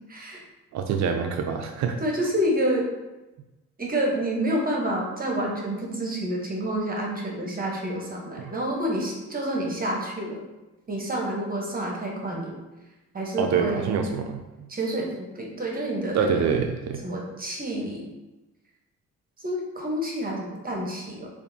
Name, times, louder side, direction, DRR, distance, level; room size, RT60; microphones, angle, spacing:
voice 1, 0.1-0.4 2.0-2.9 3.8-10.4 10.9-12.6 13.1-14.0 14.7-16.5 17.0-18.1 19.4-21.3, right 1 dB, 30° right, -1 dB, 1.0 m, -28 dB
voice 2, 0.7-2.0 8.4-8.5 13.4-14.7 16.1-17.0, right 6 dB, 65° right, 5 dB, 0.5 m, -26 dB
6.8 x 2.5 x 2.7 m, 1.1 s
cardioid pair, 90°, 30 cm